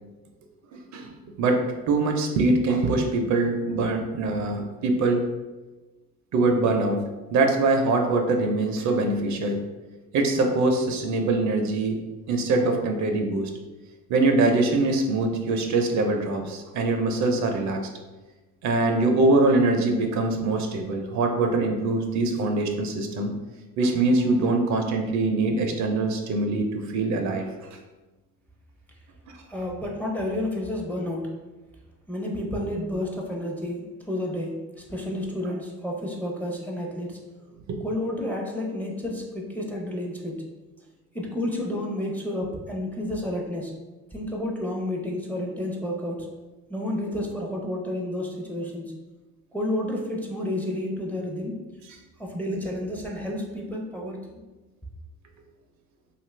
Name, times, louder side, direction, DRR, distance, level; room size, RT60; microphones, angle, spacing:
voice 1, 1.4-5.3 6.3-7.0 7.3-9.6 10.1-12.0 12.3-13.5 14.1-17.8 18.6-23.3 23.8-27.5 37.7-37.8, right 2 dB, 60° right, 4 dB, 0.5 m, -23 dB
voice 2, 29.5-31.4 32.1-37.2 37.8-40.4 41.1-43.7 44.1-46.3 46.7-48.9 49.5-51.6 52.2-54.3, left 1 dB, 5° left, -1 dB, 0.5 m, -30 dB
2.6 x 2.4 x 3.1 m, 1.2 s
supercardioid pair, 90°, 33 cm